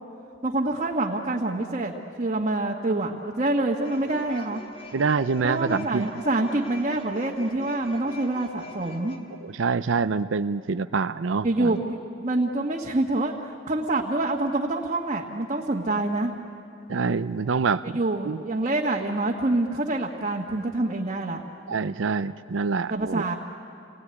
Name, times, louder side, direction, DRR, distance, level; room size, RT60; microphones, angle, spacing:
voice 1, 0.4-4.6 5.4-9.2 11.4-16.3 17.9-21.4 22.9-23.4, right 2 dB, 40° right, -2 dB, 1.6 m, -26 dB
sound 1, 3.8-9.2, left 1 dB, 35° left, 2.9 m, -43 dB
voice 2, 4.9-6.1 9.4-11.8 16.9-18.0 18.2-18.4 21.7-23.2, right 5 dB, 75° right, 12 dB, 0.5 m, -26 dB
29.0 x 20.0 x 9.8 m, 2.6 s
head